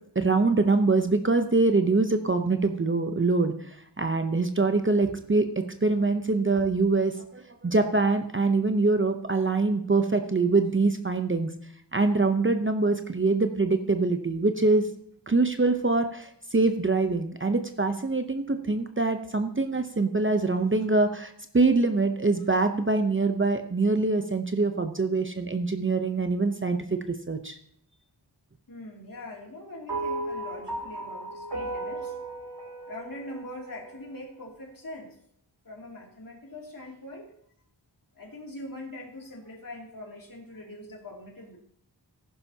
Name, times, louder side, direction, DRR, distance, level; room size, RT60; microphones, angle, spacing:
voice 1, 0.2-11.5 11.9-14.9 15.3-27.6, right 3 dB, 30° right, 7 dB, 0.7 m, -24 dB
voice 2, 28.7-32.2 32.9-35.2 35.6-37.3 38.1-41.6, left 1 dB, 50° left, -1 dB, 2.7 m, -42 dB
sound 1, 29.9-34.3, right 2 dB, 65° right, 2.9 m, -35 dB
14.5 x 11.0 x 2.8 m, 0.67 s
wide cardioid pair, 75°, 43 cm